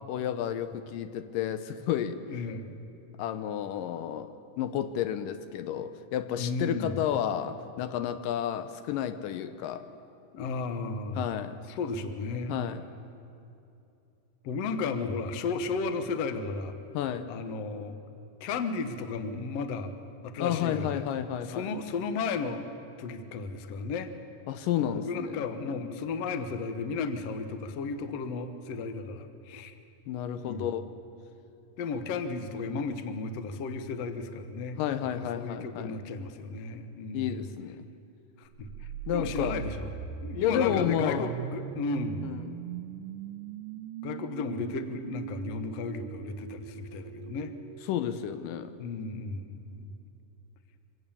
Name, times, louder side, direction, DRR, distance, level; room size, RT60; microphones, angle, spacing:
voice 1, 0.1-2.2 3.2-9.9 11.1-11.6 12.5-12.9 16.9-17.3 20.4-21.7 24.5-25.4 30.1-30.8 34.8-36.0 37.1-37.8 39.1-39.6 40.4-41.3 42.2-42.6 47.9-48.7, left 10 dB, 80° left, 10 dB, 2.4 m, -31 dB
voice 2, 2.3-2.7 6.4-7.0 10.3-11.3 11.7-12.6 14.4-16.8 17.3-18.0 18.4-19.9 20.2-21.0 21.5-22.7 23.0-24.1 24.9-29.7 30.4-30.7 31.8-34.8 35.2-37.5 38.4-39.9 40.2-42.3 44.0-47.6 48.8-49.9, left 4 dB, 60° left, 8 dB, 1.8 m, -34 dB
sound 1, 38.6-48.5, right 9 dB, 85° right, 2.4 m, -40 dB
25.0 x 18.0 x 7.1 m, 2.7 s
omnidirectional pair, 3.9 m